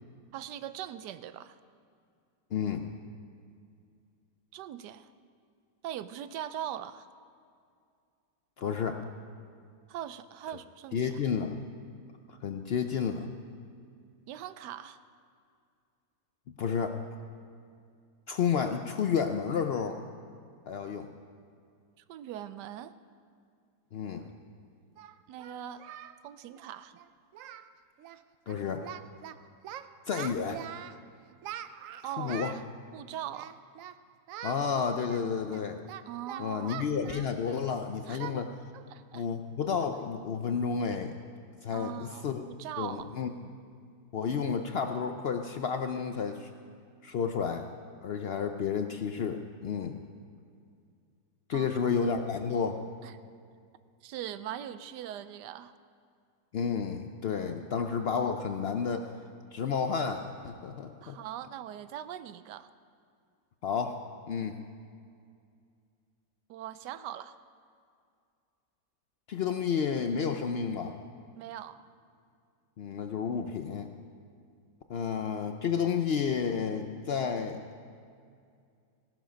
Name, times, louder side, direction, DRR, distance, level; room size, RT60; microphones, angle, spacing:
voice 1, 0.3-1.6 4.5-5.1 5.8-7.1 9.9-11.2 14.3-15.0 22.1-22.9 25.3-25.8 26.2-27.0 32.0-32.6 32.9-33.6 36.1-36.9 38.1-38.4 38.9-39.2 41.7-43.2 51.5-51.9 53.0-53.1 54.0-55.7 61.0-62.7 66.5-67.4 71.4-71.8, right 11 dB, 90° right, 13 dB, 1.2 m, -41 dB
voice 2, 2.5-2.8 8.6-9.0 10.9-11.6 12.4-13.3 16.6-17.0 18.3-20.0 20.7-21.1 23.9-24.3 28.5-28.9 30.1-30.6 32.2-32.5 34.4-35.8 36.4-38.5 39.1-41.1 41.6-42.4 42.8-43.3 44.1-46.5 47.0-47.7 48.0-50.0 51.5-52.8 56.5-59.1 59.5-61.2 63.6-64.0 64.3-64.6 69.3-71.0 72.8-73.9 74.9-77.6, left 6 dB, 85° left, 6 dB, 0.5 m, -31 dB
Singing, 24.2-24.3 25.0-26.2 26.5-26.7 27.0-27.1 27.3-27.7 28.0-28.2 28.5-29.3 29.6-31.0 31.4-32.6 33.3-34.0 34.3-34.6 35.1-37.7 38.2-38.4 38.7-38.9 39.3-39.4 39.9-40.2, right 11 dB, 70° right, 0.8 m, -43 dB
17.5 x 11.5 x 5.1 m, 2.3 s
omnidirectional pair, 1.8 m